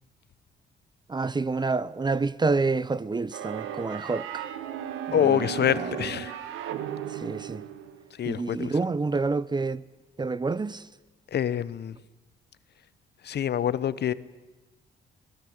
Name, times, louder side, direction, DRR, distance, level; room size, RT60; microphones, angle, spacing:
voice 1, 1.1-4.5 5.1-6.0 7.1-7.6 8.2-9.8 10.2-10.9, right 3 dB, 20° right, 0.7 m, -28 dB
sound 1, 3.3-8.1, right 9 dB, 90° right, 1.6 m, -36 dB
voice 2, 5.1-6.4 8.2-8.7 11.3-11.9 13.2-14.1, left 9 dB, 55° left, 0.9 m, -26 dB
23.5 x 19.0 x 8.0 m
cardioid pair, 90°, 20 cm